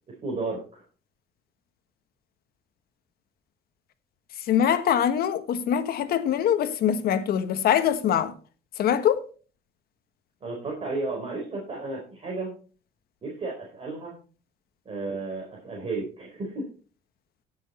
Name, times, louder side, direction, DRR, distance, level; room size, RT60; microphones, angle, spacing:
voice 1, 0.2-0.8 10.4-12.5 13.2-14.1 14.8-16.6, right 3 dB, 35° right, 4.2 m, -33 dB
voice 2, 4.4-8.3 8.8-9.2, left 9 dB, 65° left, 1.4 m, -23 dB
16.5 x 6.5 x 4.2 m
cardioid pair, 110°, 17 cm